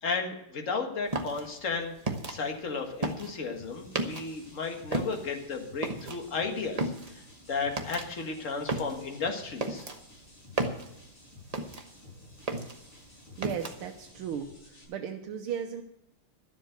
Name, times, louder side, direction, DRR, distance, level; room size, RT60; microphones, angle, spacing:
voice 1, 0.0-1.9 2.3-7.2 7.5-9.9, left 4 dB, 40° left, 3 dB, 1.8 m, -34 dB
sound 1, 1.1-4.5 4.8-12.1 12.3-14.0, right 2 dB, 35° right, 0.6 m, -35 dB
sound 2, 3.6-14.8, left 2 dB, 85° left, 6.5 m, -53 dB
voice 2, 13.4-15.8, right 8 dB, 80° right, 4 dB, 1.7 m, -36 dB
12.5 x 7.6 x 7.9 m, 0.79 s
omnidirectional pair, 2.4 m